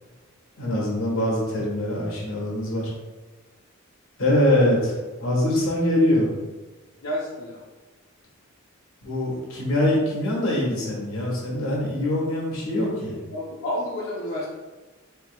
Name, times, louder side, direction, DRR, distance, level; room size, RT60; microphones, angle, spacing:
voice 1, 0.6-2.9 4.2-6.3 9.0-13.2, left 1 dB, 85° left, -4 dB, 1.4 m, -23 dB
voice 2, 7.0-7.6 13.3-14.4, left 1 dB, 70° left, -5 dB, 0.6 m, -30 dB
4.2 x 3.6 x 2.4 m, 1.2 s
head